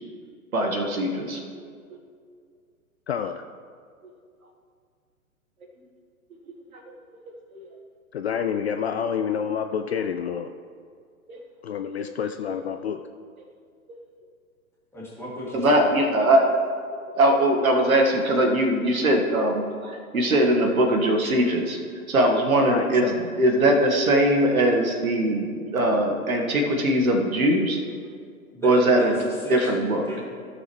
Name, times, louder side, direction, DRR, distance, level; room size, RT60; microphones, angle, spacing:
voice 1, 0.5-1.4 7.5-7.6 11.3-11.4 15.5-16.4 17.1-21.8 22.1-25.5 25.7-27.8 28.6-29.1 29.5-30.0, right 1 dB, 70° right, 2 dB, 1.6 m, -21 dB
voice 2, 3.1-3.4 8.1-10.5 11.6-13.0 22.7-23.1, left 7 dB, 50° left, 7 dB, 0.4 m, -28 dB
voice 3, 14.9-16.0 28.5-30.2, left 1 dB, 5° left, -7 dB, 2.4 m, -36 dB
15.5 x 6.6 x 3.1 m, 2.1 s
figure-of-eight pair, 115°, 44 cm